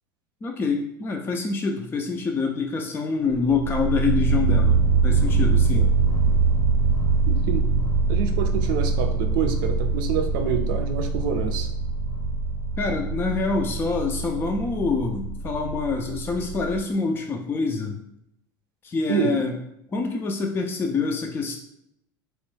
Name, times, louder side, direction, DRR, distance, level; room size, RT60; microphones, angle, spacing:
voice 1, 0.4-5.9 12.8-18.0 18.8-19.6 19.9-21.6, left 4 dB, 20° left, 2 dB, 0.4 m, -26 dB
sound 1, 3.3-16.8, right 4 dB, 30° right, 0.7 m, -23 dB
voice 2, 7.3-7.6 8.1-11.7 19.1-19.3, right 7 dB, 65° right, 6 dB, 0.4 m, -27 dB
3.0 x 2.1 x 3.2 m, 0.78 s
hypercardioid pair, 75°, 12 cm